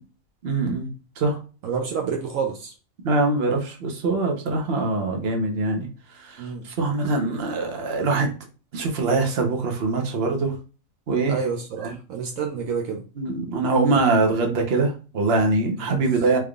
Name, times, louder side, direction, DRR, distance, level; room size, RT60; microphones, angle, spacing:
voice 1, 0.4-0.9 1.2-1.4 3.0-5.8 6.8-8.3 8.7-10.5 11.1-11.4 11.8-11.9 13.2-16.4, right 3 dB, 50° right, 1.0 m, -23 dB
voice 2, 1.6-2.7 6.4-6.7 11.3-13.0 15.8-16.0, right 6 dB, 75° right, 1.0 m, -29 dB
3.4 x 3.2 x 2.3 m
omnidirectional pair, 1.4 m